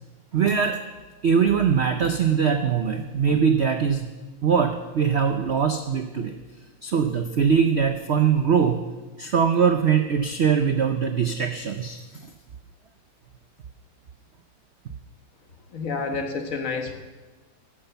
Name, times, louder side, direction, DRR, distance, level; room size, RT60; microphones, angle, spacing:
voice 1, 0.3-0.8 1.2-4.1 4.4-6.3 6.8-8.8 9.2-12.3, right 7 dB, 80° right, 7 dB, 0.5 m, -22 dB
voice 2, 15.7-16.9, left 4 dB, 45° left, 6 dB, 1.5 m, -29 dB
11.5 x 11.0 x 6.9 m, 1.2 s
omnidirectional pair, 2.1 m